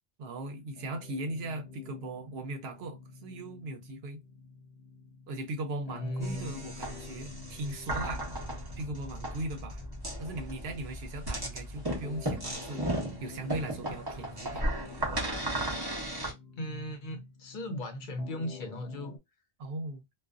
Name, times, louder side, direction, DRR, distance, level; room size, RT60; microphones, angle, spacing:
voice 1, 0.2-4.2 5.3-8.3 8.8-9.8 10.2-12.8 13.2-14.6 19.6-20.0, right 2 dB, 80° right, 0.9 m, -38 dB
sound 1, 0.8-19.2, left 5 dB, 85° left, 0.9 m, -50 dB
voice 2, 5.9-6.5 16.6-19.2, left 1 dB, 60° left, 0.7 m, -37 dB
sound 2, 6.2-16.3, right 1 dB, 25° right, 0.7 m, -35 dB
2.5 x 2.2 x 2.4 m
omnidirectional pair, 1.0 m